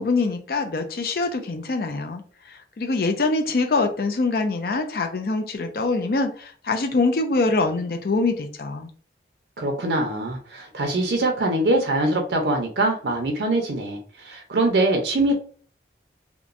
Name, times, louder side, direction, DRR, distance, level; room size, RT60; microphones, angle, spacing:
voice 1, 0.0-8.9, left 3 dB, 55° left, 5 dB, 0.4 m, -24 dB
voice 2, 9.6-15.3, right 2 dB, 75° right, 3 dB, 0.5 m, -23 dB
2.9 x 2.1 x 2.4 m, 0.43 s
head